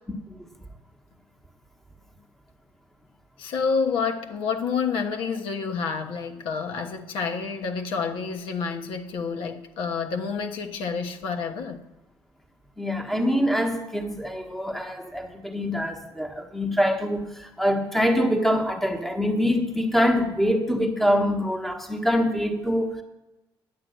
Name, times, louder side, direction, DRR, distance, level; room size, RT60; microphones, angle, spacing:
voice 1, 3.4-11.8, left 5 dB, 80° left, 1.3 m, -28 dB
voice 2, 12.8-23.0, equal, 5° left, 1.3 m, -24 dB
10.5 x 7.8 x 9.2 m
cardioid pair, 150°, 9 cm